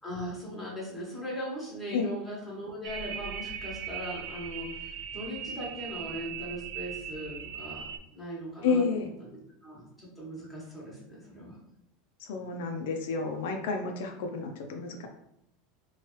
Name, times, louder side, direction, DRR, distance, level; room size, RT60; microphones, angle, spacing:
voice 1, 0.0-11.6, equal, ahead, -7 dB, 1.2 m, -39 dB
sound 1, 2.8-8.0, right 7 dB, 70° right, 0.3 m, -39 dB
voice 2, 8.6-9.1 12.2-15.1, left 4 dB, 75° left, 3 dB, 0.4 m, -30 dB
3.0 x 2.3 x 3.0 m, 0.80 s
supercardioid pair, 145°, 0 cm